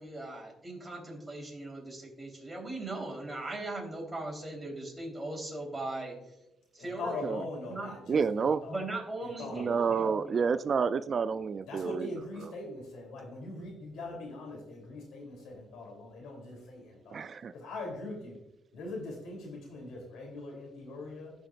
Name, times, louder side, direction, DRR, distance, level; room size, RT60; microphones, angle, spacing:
voice 1, 0.0-6.2 6.7-7.2 7.7-7.9 8.7-10.4, right 2 dB, 15° right, -1 dB, 3.6 m, -39 dB
voice 2, 6.8-8.8 9.2-10.1 11.6-17.2 17.5-18.4 18.7-21.3, left 2 dB, 80° left, 0 dB, 3.3 m, -42 dB
voice 3, 8.1-8.6 9.5-12.5 17.1-17.5, right 5 dB, 45° right, 13 dB, 0.3 m, -29 dB
16.5 x 5.9 x 2.5 m, 0.89 s
cardioid pair, 90°, 0 cm